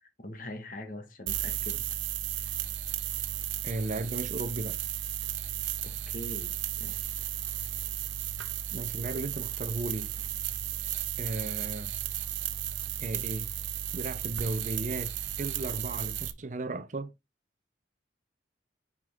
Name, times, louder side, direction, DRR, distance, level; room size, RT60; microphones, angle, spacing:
voice 1, 0.0-1.9 5.8-7.1, left 1 dB, 45° left, 1.4 m, -43 dB
sound 1, 1.3-16.3, right 11 dB, 85° right, 0.6 m, -34 dB
voice 2, 3.6-4.8 8.7-10.1 11.2-11.9 13.0-13.5 13.9-15.1 15.4-17.1, right 2 dB, 40° right, 0.5 m, -35 dB
6.1 x 5.2 x 3.5 m
head